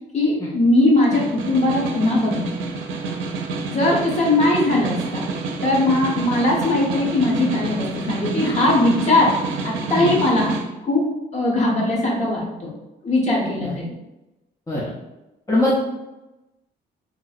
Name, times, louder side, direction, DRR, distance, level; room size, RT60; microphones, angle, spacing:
voice 1, 0.1-2.6 3.6-5.2 5.6-10.5 10.8-11.0 11.3-12.7 13.0-13.9, left 2 dB, 35° left, -3 dB, 1.1 m, -20 dB
Snare drum, 0.9-10.7, right 4 dB, 75° right, 0.5 m, -29 dB
voice 2, 15.5-15.8, left 1 dB, 15° left, -6 dB, 0.6 m, -22 dB
3.0 x 2.7 x 2.4 m, 0.98 s
cardioid pair, 90°, 20 cm